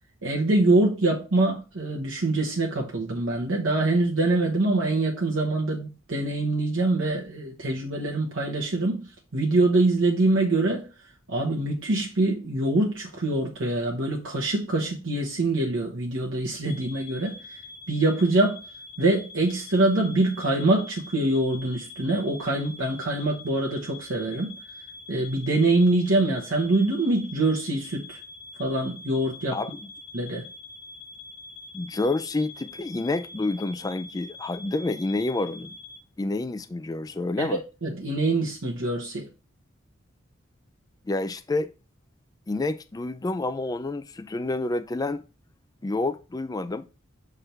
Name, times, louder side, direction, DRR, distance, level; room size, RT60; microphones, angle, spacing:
voice 1, 0.2-9.1 9.3-10.9 11.3-17.6 17.9-18.6 19.0-24.5 25.1-28.2 28.6-29.6 30.1-30.4 37.4-39.3, right 2 dB, 75° right, 1.1 m, -24 dB
sound 1, 16.7-36.0, left 3 dB, 60° left, 1.1 m, -44 dB
voice 2, 29.5-29.9 31.7-35.8 36.2-37.6 41.1-41.7 42.5-45.2 45.8-46.8, left 2 dB, 20° left, 0.3 m, -28 dB
6.8 x 3.6 x 4.5 m
head